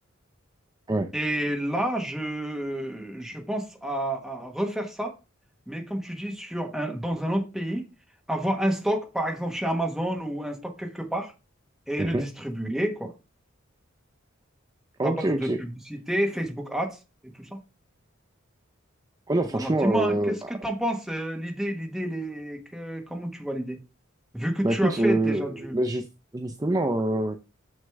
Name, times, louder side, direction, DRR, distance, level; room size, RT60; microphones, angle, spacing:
voice 1, 1.1-5.2 5.7-7.9 8.3-11.3 11.9-13.1 15.0-17.0 17.4-17.6 19.5-23.8 24.3-25.8, right 1 dB, ahead, 1.3 m, -29 dB
voice 2, 15.0-15.6 19.3-20.3 24.6-26.1 26.3-27.4, right 1 dB, 20° right, 0.5 m, -25 dB
6.4 x 6.4 x 3.5 m
head